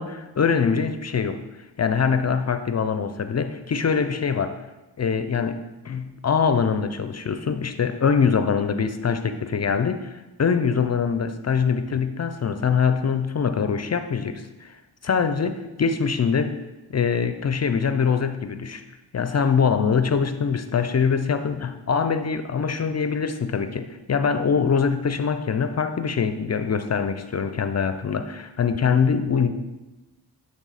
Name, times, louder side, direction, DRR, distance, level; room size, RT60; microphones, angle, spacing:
voice 1, 0.0-1.4 1.8-4.6 5.0-14.8 15.0-16.6 16.9-18.8 19.1-29.5, left 6 dB, 40° left, 9 dB, 0.5 m, -23 dB
8.9 x 3.6 x 4.0 m, 1.1 s
cardioid pair, 50°, 43 cm